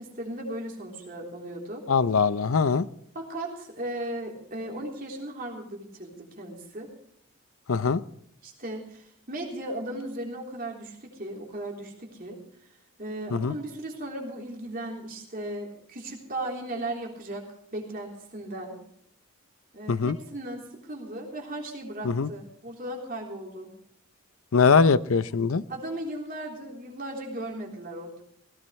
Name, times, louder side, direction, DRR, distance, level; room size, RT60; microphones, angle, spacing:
voice 1, 0.0-1.8 3.1-6.9 8.4-12.4 13.0-18.8 19.7-23.7 25.7-28.2, right 1 dB, 40° right, 0 dB, 3.6 m, -36 dB
voice 2, 1.9-2.9 7.7-8.0 13.3-13.5 19.9-20.2 22.0-22.3 24.5-25.6, left 5 dB, 80° left, 16 dB, 0.6 m, -22 dB
17.0 x 16.5 x 3.3 m, 0.69 s
head